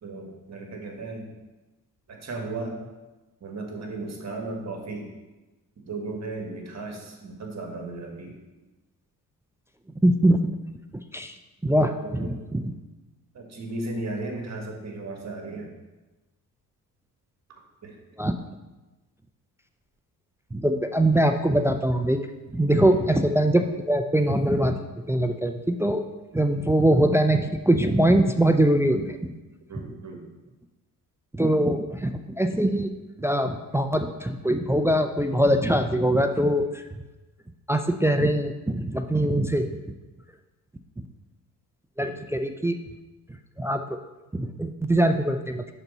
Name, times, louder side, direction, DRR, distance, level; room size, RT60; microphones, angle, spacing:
voice 1, 0.0-1.3 2.1-2.8 3.4-5.1 5.8-8.4 12.0-12.3 13.3-15.7 17.8-18.0 22.8-23.0 29.7-30.2 39.1-39.4 42.0-42.2, right 2 dB, 40° right, 2 dB, 1.6 m, -35 dB
voice 2, 10.0-10.4 11.1-11.3 11.6-12.7 18.2-18.3 20.5-22.2 22.5-24.8 25.1-26.1 26.3-29.3 29.8-29.9 31.3-32.9 33.2-36.8 37.7-39.8 42.0-42.8 43.6-43.8 44.3-45.7, right 1 dB, 5° right, 6 dB, 0.3 m, -22 dB
5.8 x 4.0 x 5.4 m, 1.1 s
supercardioid pair, 75°, 39 cm